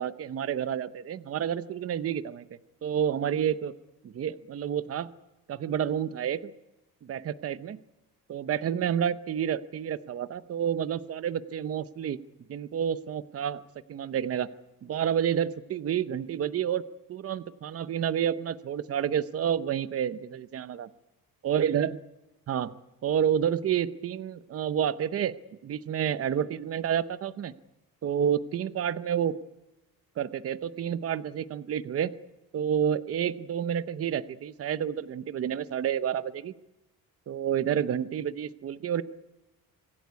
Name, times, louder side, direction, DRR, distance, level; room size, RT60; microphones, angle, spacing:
voice 1, 0.0-2.5 2.8-3.7 4.0-5.1 5.5-6.5 7.0-7.8 8.3-12.2 12.5-13.6 13.9-14.5 14.8-16.8 17.1-20.9 21.4-22.0 22.5-22.7 23.0-25.3 25.6-27.5 28.0-29.4 30.2-32.1 32.5-36.5 37.3-39.0, right 9 dB, 40° right, 14 dB, 0.8 m, -29 dB
25.0 x 16.5 x 9.5 m, 0.97 s
cardioid pair, 175°, 37 cm